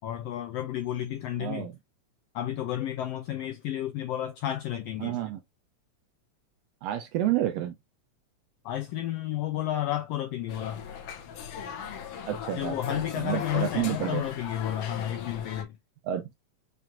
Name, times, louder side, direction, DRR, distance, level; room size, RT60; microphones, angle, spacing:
voice 1, 0.0-1.7 2.3-5.2 8.6-10.8 12.5-15.8, left 12 dB, 90° left, 1.4 m, -32 dB
voice 2, 1.4-1.7 5.0-5.4 6.8-7.7 12.3-14.3 16.0-16.3, right 12 dB, 80° right, 1.5 m, -30 dB
sound 1, 10.5-15.6, left 7 dB, 70° left, 1.7 m, -38 dB
5.9 x 3.2 x 2.4 m
omnidirectional pair, 3.3 m